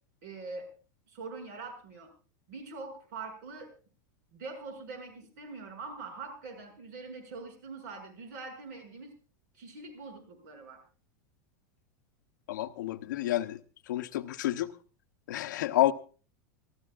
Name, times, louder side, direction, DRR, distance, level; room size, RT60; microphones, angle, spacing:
voice 1, 0.2-0.7 1.1-2.1 2.5-3.7 4.3-9.1 9.5-10.8, right 4 dB, 65° right, 6.6 m, -43 dB
voice 2, 12.5-13.6 13.9-14.7 15.3-15.9, left 14 dB, 85° left, 0.9 m, -29 dB
25.5 x 14.5 x 2.4 m
supercardioid pair, 145°, 10 cm